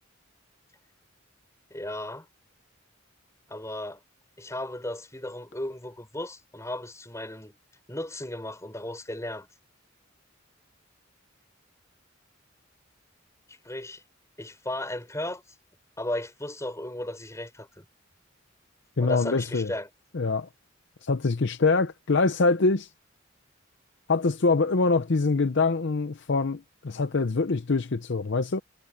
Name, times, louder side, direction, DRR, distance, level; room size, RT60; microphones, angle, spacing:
voice 1, 1.7-2.3 3.5-4.0 4.4-7.6 7.9-9.5 13.5-14.0 14.4-15.4 16.0-17.8 19.0-19.9, left 1 dB, 15° left, 6.1 m, -35 dB
voice 2, 19.0-19.7 20.1-20.5 21.0-22.9 24.1-28.6, left 3 dB, 60° left, 0.7 m, -24 dB
head